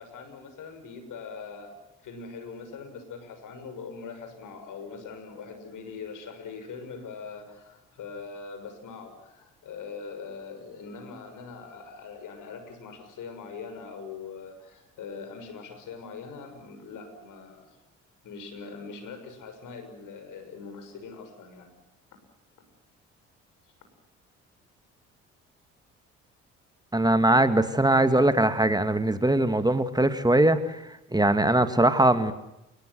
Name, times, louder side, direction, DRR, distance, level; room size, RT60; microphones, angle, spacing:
voice 1, 0.0-1.7 2.0-17.8 18.2-21.7, left 5 dB, 60° left, 8 dB, 6.4 m, -42 dB
voice 2, 26.9-30.8 31.1-32.3, right 1 dB, 10° right, 9 dB, 2.3 m, -21 dB
30.0 x 18.5 x 7.8 m, 0.92 s
figure-of-eight pair, 50°, 36 cm